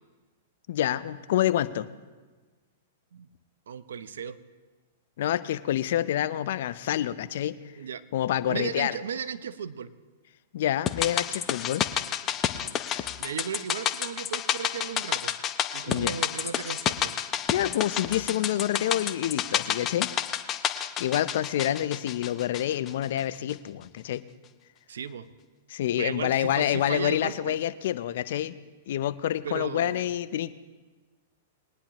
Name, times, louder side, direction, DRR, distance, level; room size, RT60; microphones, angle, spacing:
voice 1, 0.7-1.9 5.2-7.6 8.1-9.0 10.5-11.9 12.9-13.1 15.9-16.2 17.5-20.2 21.0-24.2 25.7-28.6 28.9-30.5, left 12 dB, 65° left, 14 dB, 0.6 m, -27 dB
voice 2, 3.7-4.4 7.8-8.0 8.5-9.9 13.2-15.3 15.7-17.1 24.9-25.3 26.0-27.6 29.4-30.1, right 7 dB, 75° right, 13 dB, 0.7 m, -35 dB
sound 1, 10.9-23.2 23.5-23.6, left 10 dB, 30° left, 0.7 m, -30 dB
21.5 x 10.0 x 3.0 m, 1.3 s
hypercardioid pair, 120°, 0 cm